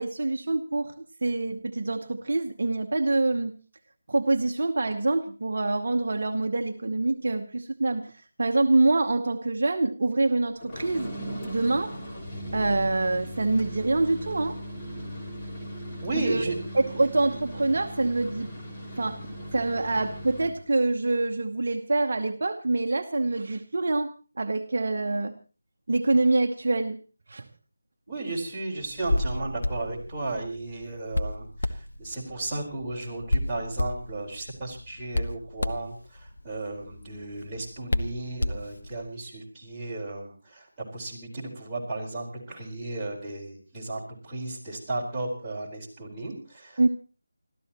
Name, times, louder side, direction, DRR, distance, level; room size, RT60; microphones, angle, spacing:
voice 1, 0.0-3.6 4.1-8.1 8.4-11.1 11.4-12.0 12.5-14.6 16.2-16.5 16.7-18.5 19.0-19.2 19.5-24.1 24.4-25.3 25.9-27.0 27.3-27.5 46.8-46.9, right 2 dB, 50° right, 5 dB, 1.0 m, -25 dB
sound 1, 10.6-20.6, equal, 15° left, 3.2 m, -38 dB
voice 2, 16.0-16.5 16.9-17.1 28.1-40.7 40.9-46.9, right 2 dB, 10° right, -8 dB, 4.6 m, -34 dB
Hands, 28.8-39.1, left 1 dB, 65° left, 1.3 m, -32 dB
29.5 x 13.5 x 3.0 m, 0.35 s
figure-of-eight pair, 160°, 0 cm